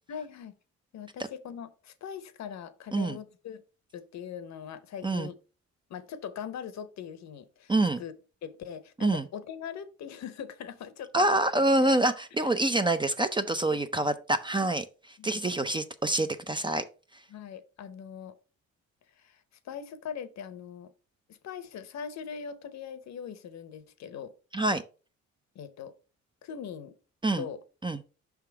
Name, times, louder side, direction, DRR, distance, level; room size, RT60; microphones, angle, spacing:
voice 1, 0.1-0.6 0.9-3.6 3.9-5.3 5.9-7.7 8.0-8.1 8.4-11.4 11.8-12.0 13.7-14.1 15.2-15.4 17.3-18.3 19.2-20.9 21.3-24.3 25.5-25.9 26.4-27.0 27.3-27.6, left 7 dB, 65° left, 0.8 m, -41 dB
voice 2, 7.7-8.0 9.0-9.3 11.1-16.8 24.5-24.8 27.2-27.5 27.8-28.0, right 2 dB, 15° right, 0.5 m, -26 dB
5.7 x 3.6 x 4.6 m
cardioid pair, 90°, 30 cm